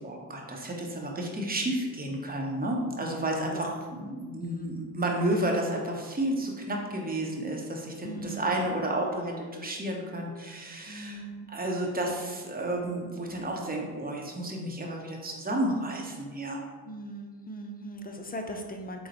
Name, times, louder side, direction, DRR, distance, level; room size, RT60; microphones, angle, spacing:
voice 1, 0.0-11.2 11.5-16.6, right 1 dB, 20° right, 0 dB, 0.8 m, -31 dB
voice 2, 4.4-4.8 8.0-8.7 10.9-11.5 16.8-19.1, right 1 dB, 20° left, 3 dB, 0.4 m, -40 dB
3.7 x 2.1 x 4.2 m, 1.4 s
supercardioid pair, 60°, 44 cm